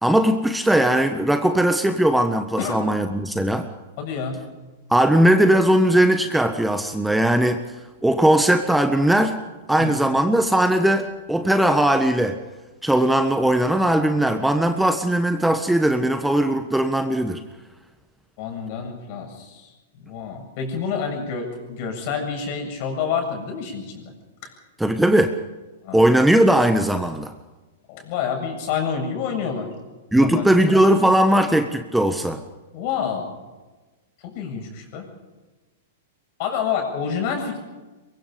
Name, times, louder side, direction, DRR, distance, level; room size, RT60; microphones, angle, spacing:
voice 1, 0.0-3.7 4.9-7.6 8.0-9.4 9.7-12.4 12.8-17.4 24.8-25.3 25.9-27.3 30.1-32.4, right 1 dB, 5° right, 7 dB, 1.4 m, -19 dB
voice 2, 4.0-4.4 9.8-10.0 18.4-19.7 20.0-24.1 24.4-24.5 25.8-26.1 27.9-29.7 30.1-30.5 32.7-33.3 34.2-35.1 36.4-37.6, left 6 dB, 50° left, 4 dB, 7.5 m, -28 dB
23.5 x 23.0 x 5.2 m, 1.2 s
hypercardioid pair, 105°, 0 cm